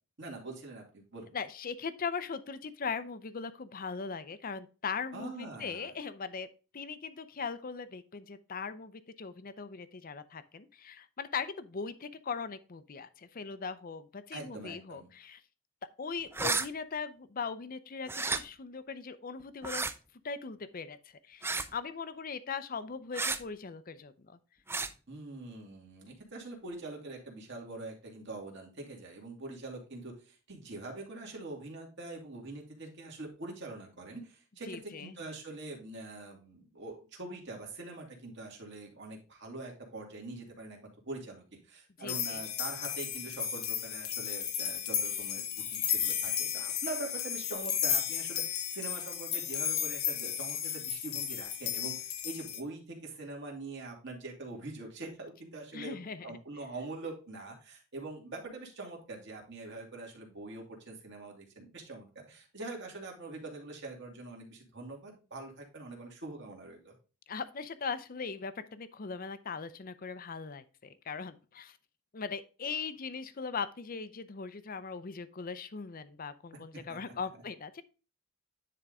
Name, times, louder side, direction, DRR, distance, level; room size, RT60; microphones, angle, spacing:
voice 1, 0.2-1.4 5.1-5.9 14.3-15.1 25.1-56.0 56.2-66.9 76.9-77.1, right 2 dB, 55° right, 0 dB, 2.3 m, -44 dB
voice 2, 1.3-6.5 6.7-15.4 16.0-19.9 20.2-24.4 34.7-35.1 42.0-42.4 55.7-56.4 67.3-71.8 72.1-77.8, left 5 dB, 40° left, 13 dB, 0.5 m, -39 dB
sound 1, 16.3-16.7 18.1-18.4 19.6-19.9 21.4-21.7 23.1-23.4 24.7-24.9, right 3 dB, 10° right, 0.4 m, -31 dB
sound 2, 42.1-52.6, left 9 dB, 80° left, 1.0 m, -34 dB
10.0 x 3.9 x 3.6 m, 0.34 s
head